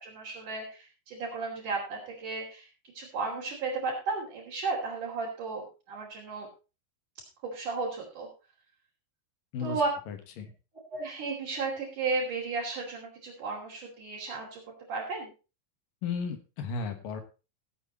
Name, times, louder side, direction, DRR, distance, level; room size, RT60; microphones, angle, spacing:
voice 1, 0.0-2.7 2.9-6.5 7.4-8.3 9.6-9.9 10.9-14.6 14.9-15.3, right 4 dB, 50° right, -5 dB, 3.9 m, -34 dB
voice 2, 10.1-10.5 16.0-17.2, left 5 dB, 65° left, 8 dB, 2.6 m, -34 dB
16.5 x 8.2 x 4.1 m, 0.32 s
omnidirectional pair, 5.0 m